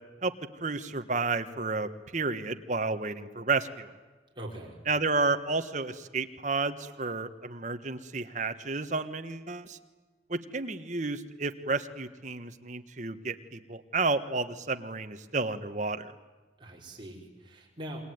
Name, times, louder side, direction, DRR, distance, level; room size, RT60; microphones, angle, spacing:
voice 1, 0.6-3.9 4.9-9.8 10.3-16.1, right 3 dB, 45° right, 8 dB, 1.4 m, -31 dB
voice 2, 4.4-4.8 16.6-18.1, right 1 dB, 25° right, -1 dB, 5.8 m, -42 dB
27.5 x 22.5 x 9.6 m, 1.3 s
head